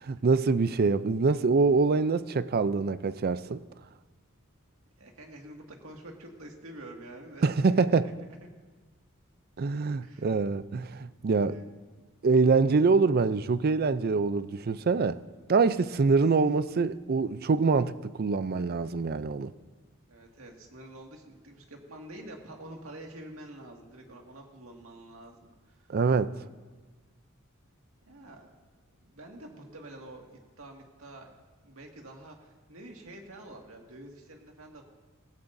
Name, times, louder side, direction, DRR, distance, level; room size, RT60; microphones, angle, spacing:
voice 1, 0.1-3.6 7.4-8.1 9.6-11.6 12.2-15.2 15.5-19.5 25.9-26.3, right 4 dB, 45° right, 0.4 m, -25 dB
voice 2, 5.0-8.1 10.0-10.3 11.5-11.7 16.4-16.5 20.1-25.9 26.4-26.5 28.1-28.5 29.0-30.3 30.6-31.3 31.6-34.8, right 1 dB, 75° right, 2.0 m, -47 dB
17.5 x 16.0 x 2.6 m
head